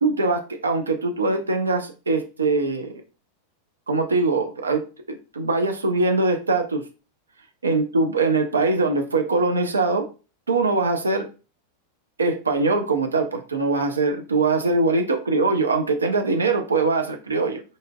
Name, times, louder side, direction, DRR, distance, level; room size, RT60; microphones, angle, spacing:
voice 1, 0.0-2.9 3.9-6.8 7.6-10.1 10.5-11.3 12.2-17.6, right 3 dB, 75° right, 5 dB, 0.4 m, -22 dB
3.9 x 2.5 x 2.2 m, 0.32 s
figure-of-eight pair, 90°, 0 cm